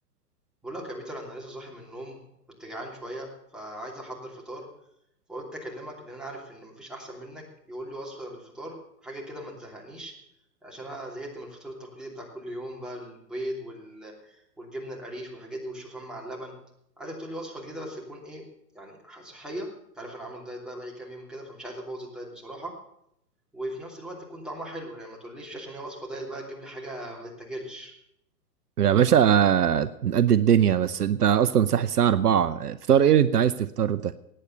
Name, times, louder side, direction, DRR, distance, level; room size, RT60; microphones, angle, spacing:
voice 1, 0.6-2.3 2.6-4.6 5.3-10.1 10.6-16.5 17.0-18.4 18.7-19.7 20.0-22.7 23.5-27.9, right 1 dB, ahead, -2 dB, 2.9 m, -39 dB
voice 2, 28.8-34.1, right 9 dB, 70° right, 14 dB, 0.8 m, -21 dB
18.0 x 8.8 x 6.6 m, 0.77 s
figure-of-eight pair, 115°, 48 cm